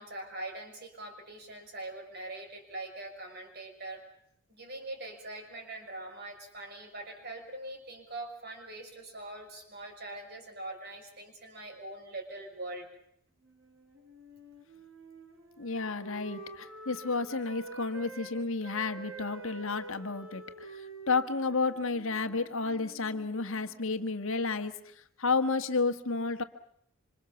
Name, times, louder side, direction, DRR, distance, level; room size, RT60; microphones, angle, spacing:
voice 1, 0.0-4.0 4.5-12.9, right 2 dB, 45° right, 3 dB, 6.2 m, -43 dB
Wind instrument woodwind instrument, 13.4-18.3 18.6-23.9, right 3 dB, 65° right, 4.8 m, -48 dB
voice 2, 15.6-24.8 25.2-26.4, left 4 dB, 65° left, 8 dB, 1.5 m, -31 dB
26.0 x 26.0 x 7.0 m, 0.69 s
head